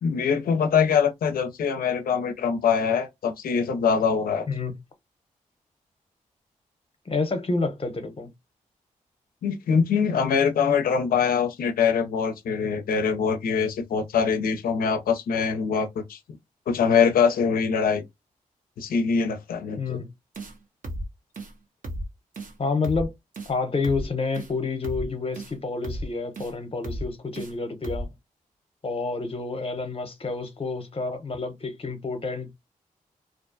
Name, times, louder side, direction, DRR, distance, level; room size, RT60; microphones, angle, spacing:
voice 1, 0.0-4.5 9.4-16.2 16.7-18.0 18.8-20.0, left 6 dB, 85° left, 0.5 m, -23 dB
voice 2, 7.1-8.3 19.8-20.1 22.6-23.1 23.5-28.1 28.8-32.6, left 3 dB, 40° left, 0.8 m, -29 dB
sound 1, 20.3-20.5 20.8-21.1 21.3-21.5 21.8-22.1 22.3-22.5 22.8-23.1 23.3-23.5 23.8-24.1 24.3-24.5 24.8-25.1 25.3-25.5 25.8-26.1 26.3-26.5 26.8-27.1 27.3-27.5 27.8-28.1, right 1 dB, 65° right, 0.8 m, -33 dB
2.5 x 2.2 x 2.6 m
cardioid pair, 45°, 15 cm